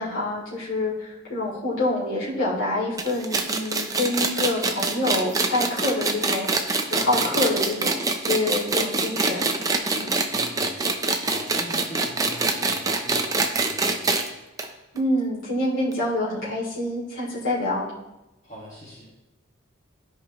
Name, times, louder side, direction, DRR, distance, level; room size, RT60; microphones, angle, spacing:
voice 1, 0.0-6.5 6.9-9.6 9.9-10.1 14.9-17.9, left 2 dB, 75° left, -8 dB, 2.7 m, -26 dB
sound 1, 3.0-14.3 14.6-14.7 15.0-15.1 15.9-16.0, right 3 dB, 15° right, 0.5 m, -24 dB
voice 2, 6.9-7.5 10.3-14.4 18.4-19.1, equal, 35° left, -7 dB, 1.8 m, -42 dB
13.5 x 4.9 x 3.0 m, 0.98 s
head